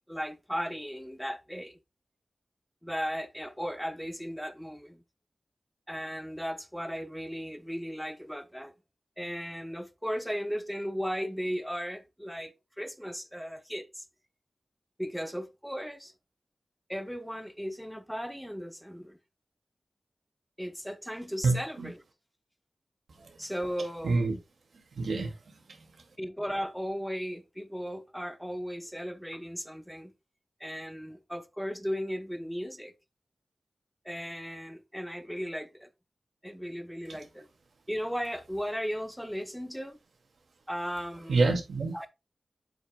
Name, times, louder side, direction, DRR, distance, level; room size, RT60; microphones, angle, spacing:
voice 1, 0.1-1.8 2.8-5.0 5.9-8.7 9.2-14.0 15.0-16.1 16.9-19.2 20.6-22.0 23.4-24.2 26.2-30.1 30.6-32.9 34.0-35.9 36.4-37.5 37.9-40.0 40.7-41.4 41.9-42.1, equal, ahead, 0.9 m, -36 dB
voice 2, 21.4-21.9 23.2-23.3 24.0-24.3 25.0-25.9 37.1-37.2 41.3-41.9, right 3 dB, 90° right, 2.4 m, -28 dB
8.0 x 7.9 x 2.3 m
wide cardioid pair, 100°, 0 cm